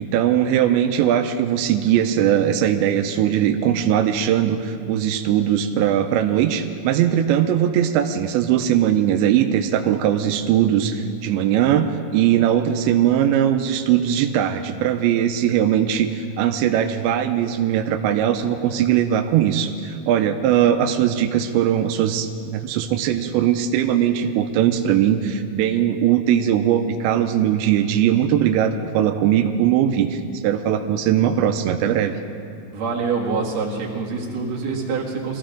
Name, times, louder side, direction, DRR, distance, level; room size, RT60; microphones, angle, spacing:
voice 1, 0.0-32.1, right 10 dB, 90° right, 6 dB, 3.0 m, -20 dB
voice 2, 32.7-35.4, right 4 dB, 50° right, -3 dB, 2.6 m, -25 dB
23.0 x 15.5 x 3.8 m, 2.5 s
omnidirectional pair, 5.1 m